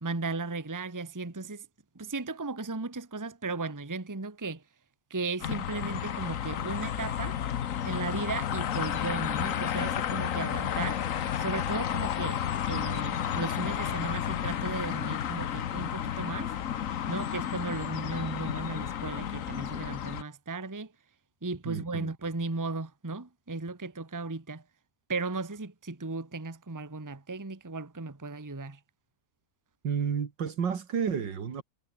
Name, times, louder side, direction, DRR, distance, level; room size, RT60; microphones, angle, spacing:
voice 1, 0.0-1.7 1.9-4.6 5.1-7.4 7.8-11.0 11.4-16.5 17.1-20.9 21.4-24.6 25.1-28.8, right 3 dB, 10° right, 1.3 m, -36 dB
sound 1, 5.4-20.2, left 9 dB, 55° left, 1.2 m, -32 dB
voice 2, 21.6-22.1 29.8-31.6, right 7 dB, 85° right, 2.7 m, -31 dB
omnidirectional pair, 1.9 m